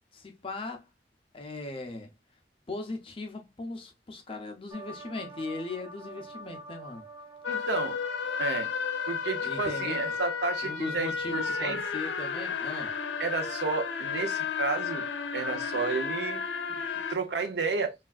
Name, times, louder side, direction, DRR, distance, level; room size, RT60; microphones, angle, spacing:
voice 1, 0.1-0.9 1.3-2.1 2.7-7.1 9.4-10.2 10.6-12.9, left 2 dB, 30° left, 0.5 m, -38 dB
sound 1, 4.7-11.1, right 2 dB, 20° right, 0.4 m, -48 dB
sound 2, 7.4-17.1, left 6 dB, 85° left, 0.5 m, -33 dB
voice 2, 7.5-8.0 8.4-8.7 9.1-11.8 13.2-15.1 15.3-16.4 16.7-16.8 17.1-17.9, right 4 dB, 70° right, 0.6 m, -31 dB
3.3 x 2.4 x 2.3 m
head